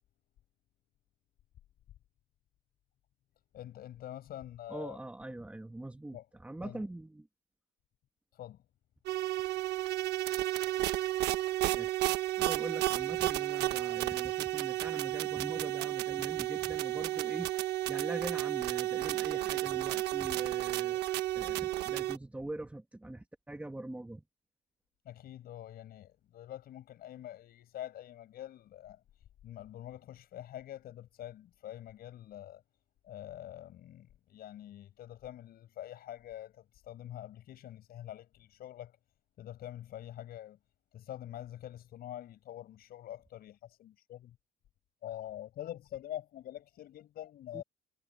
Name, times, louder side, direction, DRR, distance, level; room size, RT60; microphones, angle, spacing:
voice 1, 3.5-5.0 6.1-6.2 6.6-6.8 8.3-8.6 25.0-29.0 29.4-32.6 33.0-39.0 39.4-40.6 40.9-44.4 45.0-47.6, left 12 dB, 65° left, 7.5 m, -45 dB
voice 2, 4.7-7.3 11.7-12.0 12.4-17.5 17.9-21.1 21.3-24.2 47.5-47.6, right 1 dB, 10° right, 2.1 m, -43 dB
sound 1, 9.1-22.2, right 16 dB, 80° right, 1.2 m, -32 dB
cardioid pair, 110°, 17 cm